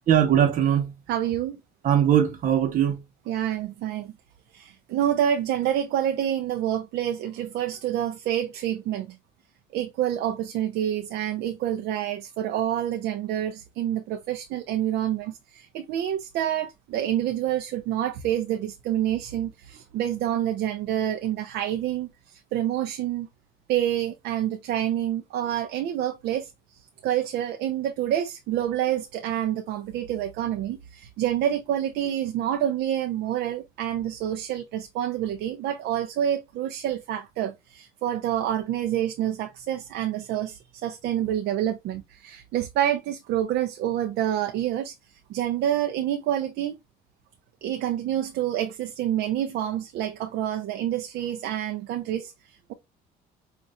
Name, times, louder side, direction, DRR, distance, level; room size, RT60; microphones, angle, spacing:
voice 1, 0.1-0.9 1.8-3.0, right 9 dB, 50° right, 0.9 m, -20 dB
voice 2, 1.1-1.6 3.3-4.1 4.5-9.2 9.7-23.3 23.7-44.9 45.3-46.8 47.6-52.7, right 11 dB, 80° right, 0.6 m, -27 dB
5.3 x 2.5 x 2.3 m
cardioid pair, 110°, 17 cm